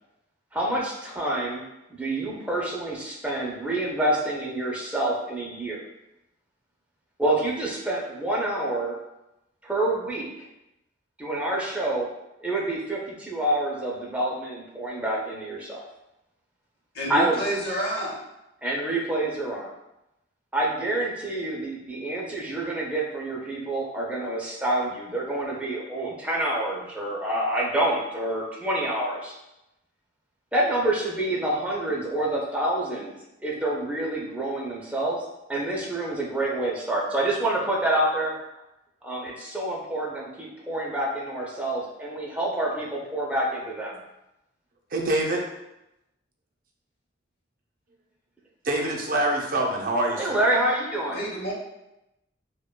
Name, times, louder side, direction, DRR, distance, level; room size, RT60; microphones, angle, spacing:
voice 1, 0.5-1.6 1.9-5.8 7.2-9.0 9.6-10.3 11.2-12.1 12.4-15.8 17.1-17.4 18.6-19.7 20.5-29.3 30.5-33.1 33.4-35.2 35.5-38.3 39.0-44.0 50.2-51.2, right 1 dB, 5° right, -4 dB, 0.6 m, -27 dB
voice 2, 16.9-18.2 51.1-51.5, right 1 dB, 55° left, -3 dB, 0.9 m, -29 dB
voice 3, 44.9-45.4 48.6-50.4, right 1 dB, 50° right, 0 dB, 0.6 m, -25 dB
5.0 x 2.2 x 2.2 m, 0.90 s
head